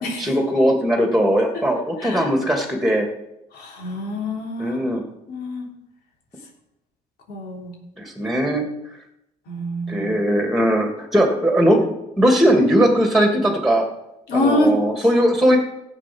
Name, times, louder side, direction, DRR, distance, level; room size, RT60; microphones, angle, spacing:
voice 1, 0.2-3.1 4.6-5.0 8.0-8.6 9.9-11.9 12.2-13.9 14.3-15.6, equal, ahead, 2 dB, 2.5 m, -19 dB
voice 2, 3.5-4.8 5.3-5.7 7.3-7.8 9.5-10.1 14.3-14.7 15.1-15.2, left 1 dB, 75° left, -1 dB, 3.6 m, -25 dB
15.0 x 8.2 x 6.2 m, 0.86 s
cardioid pair, 110°, 17 cm